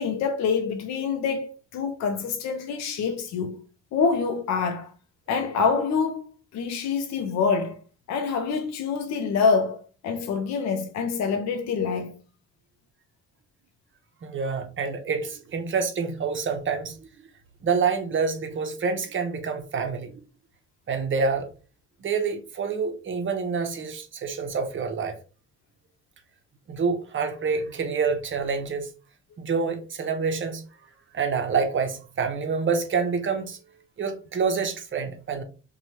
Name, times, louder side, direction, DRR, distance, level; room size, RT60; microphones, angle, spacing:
voice 1, 0.0-3.6 3.9-4.9 5.3-6.3 6.5-7.8 8.1-12.2, left 5 dB, 60° left, 0.5 m, -26 dB
voice 2, 14.2-17.0 17.6-20.1 20.9-21.5 22.0-25.1 26.7-28.9 29.4-30.6 31.1-33.6 34.0-35.4, right 5 dB, 40° right, 0.7 m, -27 dB
2.9 x 2.3 x 2.9 m
cardioid pair, 90°, 30 cm